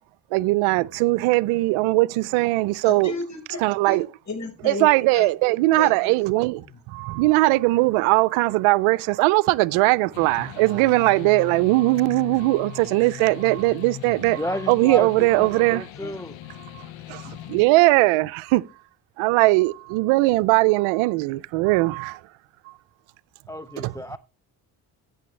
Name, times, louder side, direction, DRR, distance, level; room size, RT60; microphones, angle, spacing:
voice 1, 0.3-3.1 3.6-4.1 4.6-6.6 6.9-14.4 14.7-15.8 16.7-16.8 17.1-18.6 19.2-22.2 22.7-22.8 23.8-23.9, right 21 dB, 90° right, 0.5 m, -20 dB
voice 2, 2.8-5.3 5.7-6.8 15.9-16.2, left 3 dB, 35° left, 4.8 m, -34 dB
sound 1, 10.1-17.7, left 13 dB, 70° left, 0.8 m, -40 dB
voice 3, 14.4-16.4 23.5-24.2, equal, 5° left, 0.6 m, -32 dB
15.0 x 7.0 x 3.2 m
supercardioid pair, 55°, 47 cm